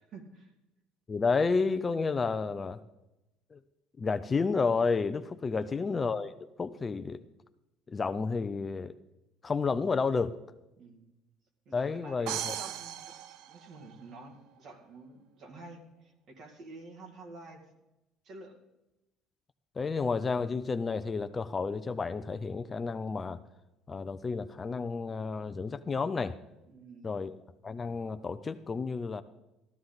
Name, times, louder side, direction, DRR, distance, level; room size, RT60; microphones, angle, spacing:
voice 1, 0.1-0.5 5.5-5.8 10.8-11.1 11.7-13.1 13.5-17.6 18.2-18.6 26.7-27.2, right 3 dB, 50° right, 4 dB, 2.2 m, -49 dB
voice 2, 1.1-2.8 3.5-3.6 4.0-7.2 7.9-8.9 9.4-10.3 11.7-12.5 19.8-23.4 23.9-26.4 27.0-27.4 27.6-29.2, left 4 dB, 20° left, 11 dB, 0.4 m, -31 dB
sound 1, 12.3-14.2, right 11 dB, 65° right, 0.5 m, -38 dB
14.0 x 12.5 x 4.0 m, 0.94 s
cardioid pair, 145°, 0 cm